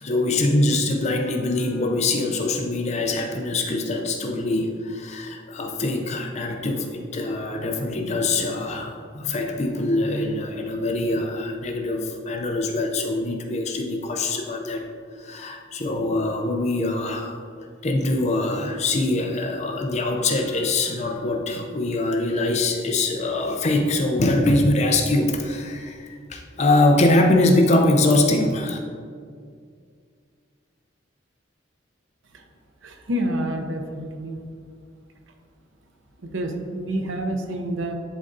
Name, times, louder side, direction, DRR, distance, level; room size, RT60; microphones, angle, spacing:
voice 1, 0.0-14.9 15.2-17.4 17.8-28.8, left 2 dB, 35° left, 3 dB, 0.5 m, -23 dB
voice 2, 32.8-34.4 36.2-37.9, right 1 dB, 90° right, 4 dB, 0.7 m, -28 dB
11.0 x 3.7 x 2.6 m, 2.1 s
head